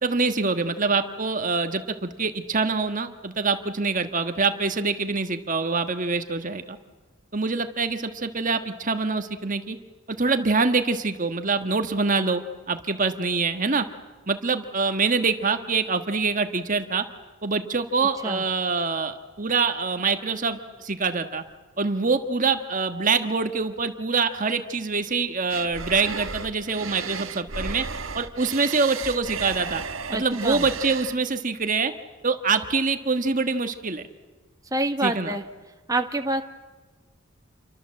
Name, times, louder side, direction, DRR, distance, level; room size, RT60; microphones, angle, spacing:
voice 1, 0.0-6.8 7.3-9.8 10.1-13.8 14.3-17.0 17.4-21.4 21.8-27.8 28.1-29.8 30.1-31.9 32.2-34.0 35.0-35.3, right 4 dB, 40° right, 8 dB, 1.5 m, -25 dB
sound 1, 25.5-31.2, right 5 dB, 75° right, 1.4 m, -34 dB
voice 2, 30.1-30.7 34.7-35.4 35.9-36.4, right 2 dB, 15° right, 5 dB, 1.6 m, -26 dB
29.0 x 24.5 x 7.7 m, 1.3 s
head